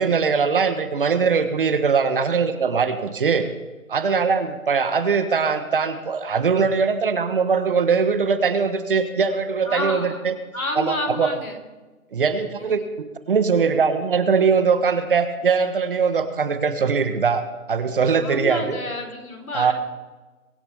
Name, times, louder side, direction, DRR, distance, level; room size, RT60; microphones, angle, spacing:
voice 1, 0.0-3.5 3.9-10.3 10.7-11.3 12.1-12.8 13.3-18.8 19.5-19.7, right 5 dB, 40° right, 10 dB, 1.2 m, -21 dB
voice 2, 9.7-10.2 10.5-11.6 12.6-12.9 18.2-19.7, left 2 dB, 85° left, 3 dB, 4.1 m, -30 dB
23.0 x 11.0 x 3.5 m, 1.2 s
figure-of-eight pair, 160°, 42 cm